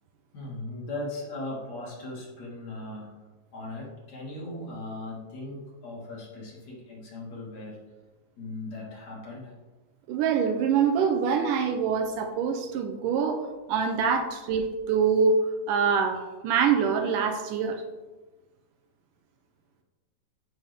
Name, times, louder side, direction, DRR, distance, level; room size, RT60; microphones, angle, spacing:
voice 1, 0.3-3.1 3.5-7.8 8.4-9.5, left 2 dB, 55° left, -4 dB, 3.4 m, -38 dB
voice 2, 10.1-15.4 15.7-17.8, right 6 dB, 75° right, 5 dB, 2.3 m, -25 dB
14.5 x 5.9 x 3.6 m, 1.2 s
omnidirectional pair, 3.9 m